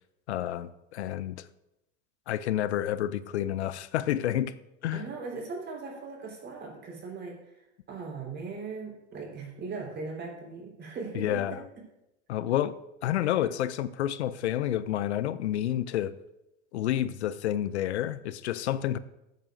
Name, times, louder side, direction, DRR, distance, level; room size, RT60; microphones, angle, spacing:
voice 1, 0.3-1.4 2.3-4.5 4.8-5.1 11.1-11.6 12.3-12.7 13.0-16.1 16.7-19.0, left 12 dB, 85° left, 0.6 m, -29 dB
voice 2, 4.9-7.4 7.9-11.6, right 4 dB, 30° right, 4.2 m, -39 dB
14.0 x 9.2 x 2.7 m
hypercardioid pair, 100°, 33 cm